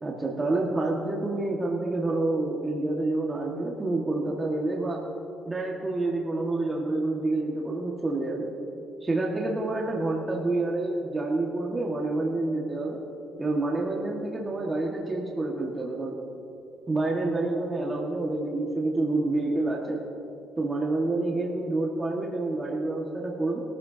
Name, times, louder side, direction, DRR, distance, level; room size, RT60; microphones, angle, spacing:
voice 1, 0.0-5.0 5.5-8.5 9.0-13.0 13.4-16.2 16.9-20.0 20.6-23.6, right 2 dB, 25° right, -2 dB, 1.8 m, -28 dB
22.5 x 13.5 x 2.9 m, 2.8 s
cardioid pair, 90°, 0 cm